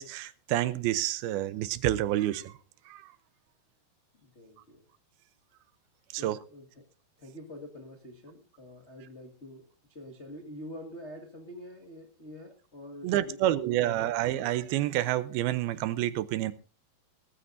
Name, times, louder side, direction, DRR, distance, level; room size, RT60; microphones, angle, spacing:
voice 1, 0.0-2.5 2.9-3.0 6.1-6.4 13.0-16.5, right 13 dB, 80° right, 2.5 m, -28 dB
voice 2, 4.2-4.8 6.2-6.8 7.2-14.1, left 1 dB, 90° left, 0.6 m, -46 dB
19.5 x 14.0 x 2.7 m
omnidirectional pair, 4.6 m